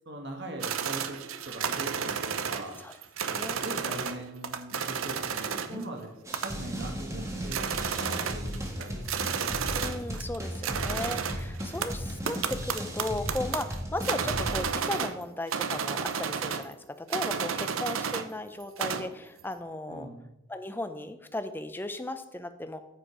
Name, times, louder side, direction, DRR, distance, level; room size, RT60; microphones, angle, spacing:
voice 1, 0.0-2.8 3.3-9.3 19.9-20.2, right 1 dB, 55° right, 2 dB, 1.5 m, -41 dB
sound 1, 0.6-4.2 4.4-5.8 6.3-6.8 7.1-7.2 7.4-10.4 10.6-15.2 15.5-16.7 17.1-18.3 18.6-19.1, right 7 dB, 85° right, 0.7 m, -32 dB
voice 2, 3.3-3.6 5.7-5.8 8.1-8.3 9.7-20.1 20.5-22.8, left 1 dB, 10° left, 9 dB, 0.6 m, -36 dB
sound 2, 6.2-14.6, equal, 15° right, 1.6 m, -36 dB
14.0 x 5.1 x 4.9 m, 0.88 s
head